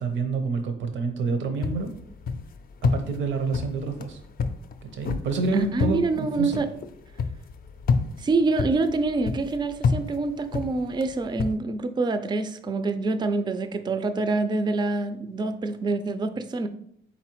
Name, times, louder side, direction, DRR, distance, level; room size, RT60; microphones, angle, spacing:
voice 1, 0.0-1.9 2.8-4.2 4.9-6.6, right 4 dB, 70° right, 7 dB, 0.7 m, -28 dB
sound 1, 1.6-11.6, left 5 dB, 50° left, 0.5 m, -30 dB
voice 2, 5.5-6.7 8.2-16.7, right 3 dB, 20° right, 10 dB, 0.4 m, -26 dB
4.2 x 4.0 x 3.0 m, 0.67 s
cardioid pair, 90°, 20 cm